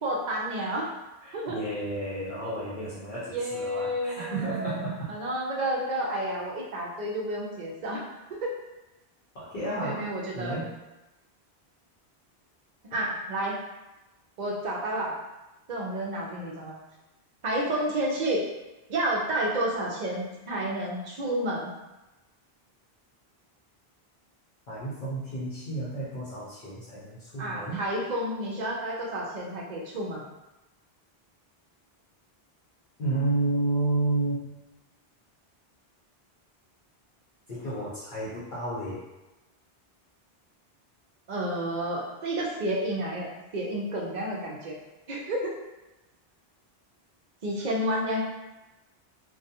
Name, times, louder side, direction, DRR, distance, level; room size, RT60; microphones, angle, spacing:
voice 1, 0.0-0.9 1.3-1.6 3.3-4.8 5.1-8.0 8.4-8.5 9.7-10.6 12.9-13.6 14.4-15.2 15.7-16.8 17.4-18.5 18.9-21.7 27.4-30.2 41.3-43.3 43.5-44.8 45.1-45.5 47.4-48.3, right 1 dB, 55° right, -2 dB, 0.6 m, -30 dB
voice 2, 1.2-5.1 9.3-10.8 24.7-27.8 33.0-34.6 37.5-39.1, right 2 dB, 55° left, -9 dB, 0.8 m, -31 dB
2.3 x 2.2 x 2.7 m, 1.0 s
omnidirectional pair, 1.0 m